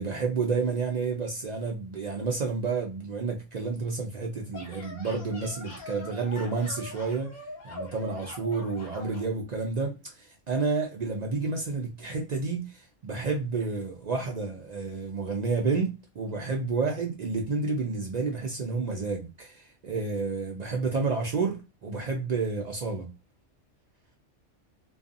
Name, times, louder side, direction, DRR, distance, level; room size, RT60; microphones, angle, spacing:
voice 1, 0.0-7.3 7.6-23.1, right 4 dB, 60° right, 0.4 m, -30 dB
sound 1, 4.3-9.3, left 2 dB, 40° left, 0.9 m, -43 dB
2.5 x 2.3 x 2.5 m
omnidirectional pair, 1.3 m